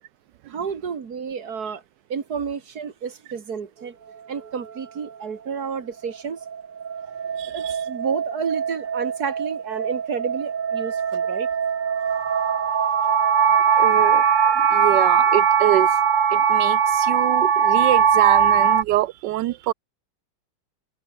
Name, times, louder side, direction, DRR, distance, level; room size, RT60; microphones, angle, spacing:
voice 1, 0.5-1.8 2.1-4.0 4.3-6.4 7.5-11.5, right 6 dB, 60° right, 2.4 m, -30 dB
sound 1, 6.0-18.8, right 7 dB, 45° right, 0.7 m, -20 dB
voice 2, 7.4-7.7 13.8-15.9 16.3-19.7, right 15 dB, 85° right, 1.3 m, -25 dB
omnidirectional pair, 1.8 m